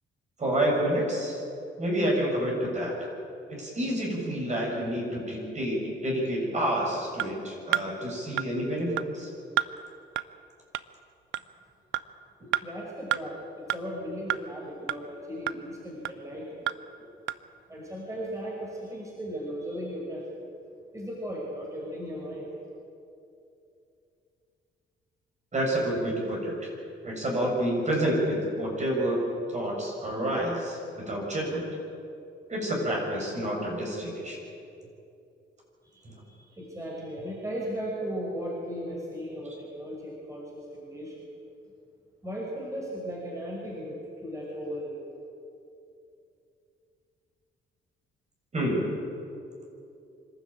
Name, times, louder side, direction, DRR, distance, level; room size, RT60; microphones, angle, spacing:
voice 1, 0.4-1.4 1.8-2.9 3.5-9.3 25.5-26.7 27.0-29.2 29.5-31.6 32.5-34.4 36.0-36.1 48.5-48.9, right 1 dB, 35° right, -2 dB, 7.5 m, -28 dB
sound 1, 7.2-7.3 7.7-7.9 8.4-8.5 9.0-9.1 9.6-9.7 10.2-10.3 10.7-10.8 11.3-11.4 11.9-12.0 12.5-12.6 13.1-13.2 13.7-13.8 14.3-14.4 14.9-15.0 15.5-15.6 16.0-16.1 16.7-16.8 17.3-17.4, right 14 dB, 80° right, 0.6 m, -28 dB
voice 2, 12.6-16.7 17.7-20.3 20.9-22.5 35.8-41.2 42.2-45.0, equal, 15° right, -4 dB, 6.0 m, -36 dB
25.5 x 13.0 x 8.9 m, 2.6 s
cardioid pair, 90°, 20 cm